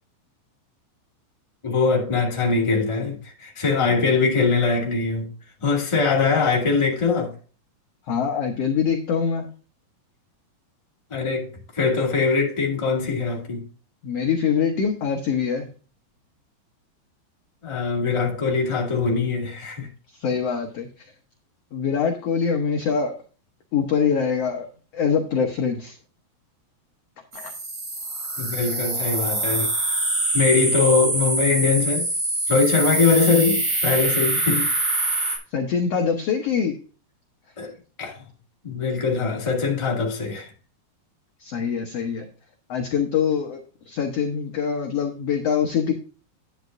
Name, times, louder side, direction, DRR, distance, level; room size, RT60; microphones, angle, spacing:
voice 1, 1.6-5.3 5.6-7.3 11.1-13.6 17.6-19.9 28.4-29.9 30.3-32.1 32.5-34.7 37.6-37.7 38.0-38.2 38.6-40.5, left 4 dB, 15° left, 1.3 m, -22 dB
voice 2, 8.1-9.5 14.0-15.7 20.2-20.9 21.7-23.1 23.7-24.7 24.9-26.0 27.3-27.5 35.5-36.7 41.4-42.3 42.7-43.6 43.9-45.9, left 6 dB, 75° left, 1.4 m, -24 dB
sound 1, 27.3-35.4, right 2 dB, 40° right, 4.1 m, -24 dB
10.5 x 9.2 x 2.6 m
omnidirectional pair, 4.3 m